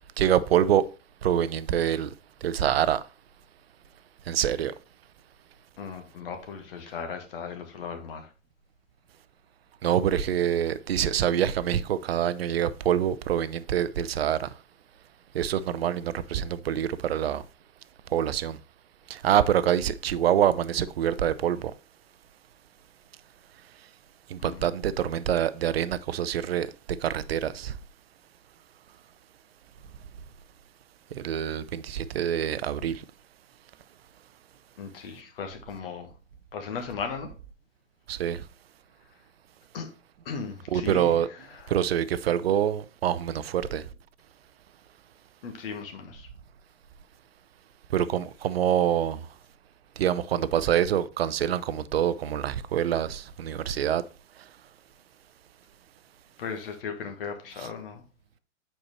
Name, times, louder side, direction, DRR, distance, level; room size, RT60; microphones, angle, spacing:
voice 1, 0.2-0.8 1.2-2.1 2.4-3.0 4.3-4.7 9.8-14.5 15.3-17.4 18.1-18.6 19.1-21.7 24.3-26.7 27.0-27.7 31.1-33.0 38.1-38.4 40.7-41.3 41.7-43.8 47.9-49.2 50.0-54.0, right 10 dB, 55° right, 0.5 m, -25 dB
voice 2, 5.8-8.3 24.4-24.7 34.8-36.1 36.5-37.3 39.7-39.9 40.2-41.7 45.4-46.3 56.4-58.0, left 6 dB, 50° left, 1.5 m, -37 dB
8.4 x 4.5 x 3.0 m
figure-of-eight pair, 105°, 37 cm